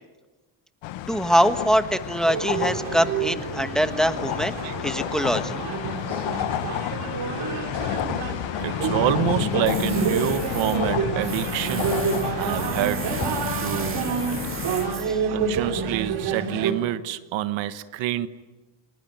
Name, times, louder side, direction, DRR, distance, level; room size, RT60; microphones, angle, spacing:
sound 1, 0.8-14.9, left 13 dB, 80° left, 1.4 m, -30 dB
voice 1, 1.1-4.5 4.8-5.6 15.0-15.2, equal, ahead, 9 dB, 1.2 m, -23 dB
sound 2, 2.3-16.7, right 6 dB, 60° right, 4.3 m, -29 dB
voice 2, 8.6-12.0 12.4-13.1 13.6-14.0 15.3-18.3, right 13 dB, 85° right, 12 dB, 1.5 m, -27 dB
Tools, 9.7-16.2, right 6 dB, 30° right, 2.0 m, -36 dB
29.5 x 21.0 x 9.3 m, 1.2 s
cardioid pair, 150°, 44 cm